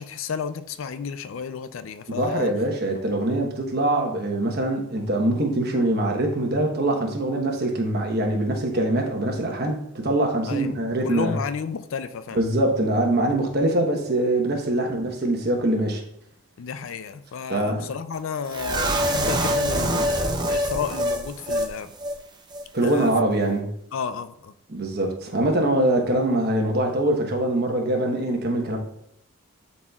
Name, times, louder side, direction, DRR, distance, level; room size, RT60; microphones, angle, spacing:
voice 1, 0.0-2.5 10.5-10.7 11.0-12.4 16.6-21.9 22.8-23.1 23.9-24.5, left 6 dB, 65° left, 11 dB, 0.4 m, -32 dB
voice 2, 2.1-11.4 12.3-16.0 17.5-17.9 22.7-23.7 24.7-28.8, right 1 dB, 50° right, 2 dB, 1.1 m, -23 dB
sound 1, 18.5-21.7 22.0-22.1 22.5-22.6, equal, 20° right, 0.6 m, -24 dB
11.0 x 4.2 x 2.4 m, 0.76 s
head